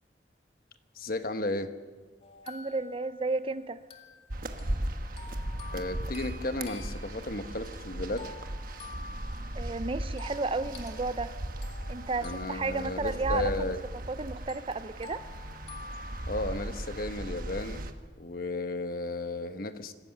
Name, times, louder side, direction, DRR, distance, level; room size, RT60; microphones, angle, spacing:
voice 1, 0.9-1.7 5.7-8.3 12.2-13.8 16.3-17.8 18.2-19.9, left 2 dB, 55° left, 9 dB, 1.2 m, -34 dB
sound 1, 2.2-14.2 14.5-16.8, left 3 dB, 35° left, 2.1 m, -49 dB
voice 2, 2.5-3.8 9.5-11.3 11.9-13.5 14.1-15.2, right 3 dB, 30° right, 13 dB, 0.6 m, -32 dB
sound 2, 4.3-17.9, right 1 dB, 50° right, 1.3 m, -37 dB
26.0 x 15.0 x 6.7 m, 1.4 s
head